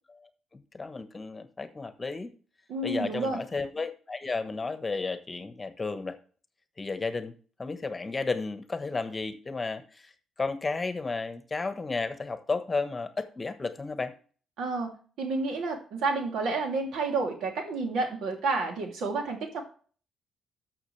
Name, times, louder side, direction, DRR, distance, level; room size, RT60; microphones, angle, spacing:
voice 1, 0.1-2.3 2.8-6.2 6.8-7.3 7.6-10.1 10.4-14.1, left 3 dB, 25° left, 10 dB, 1.2 m, -33 dB
voice 2, 2.7-3.4 14.6-19.6, right 3 dB, 75° right, 2 dB, 2.9 m, -30 dB
13.5 x 6.3 x 3.3 m, 0.40 s
cardioid pair, 90°, 0 cm